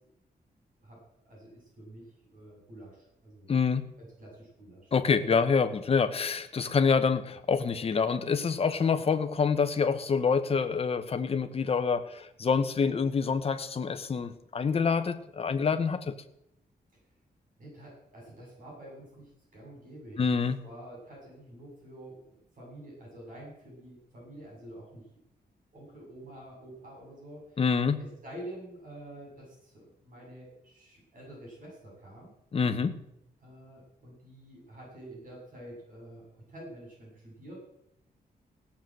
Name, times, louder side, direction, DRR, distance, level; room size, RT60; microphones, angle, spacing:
voice 1, 0.8-3.5 4.0-4.9 8.9-9.1 17.6-20.4 20.6-25.0 25.7-27.4 28.0-32.3 33.4-37.6, right 1 dB, 55° right, -2 dB, 7.6 m, -48 dB
voice 2, 3.5-3.8 4.9-16.1 20.2-20.6 27.6-28.0 32.5-33.0, left 5 dB, 40° left, 9 dB, 1.1 m, -26 dB
17.0 x 7.2 x 7.7 m, 0.80 s
wide cardioid pair, 150°, 16 cm